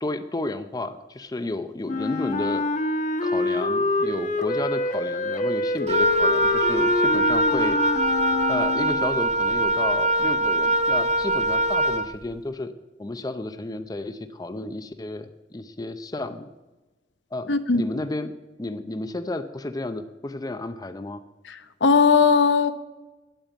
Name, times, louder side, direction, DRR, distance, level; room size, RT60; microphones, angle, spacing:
voice 1, 0.0-2.6 3.2-12.7 13.0-16.5 17.3-18.3 18.6-21.2, left 2 dB, 20° left, 0.5 m, -32 dB
Wind instrument woodwind instrument, 1.9-9.2, left 2 dB, 40° left, 0.9 m, -26 dB
Wind instrument woodwind instrument 2, 5.9-12.1, right 1 dB, 35° right, 0.6 m, -22 dB
voice 2, 17.5-17.8 21.8-22.7, left 5 dB, 80° left, 0.9 m, -18 dB
8.9 x 8.7 x 9.1 m
head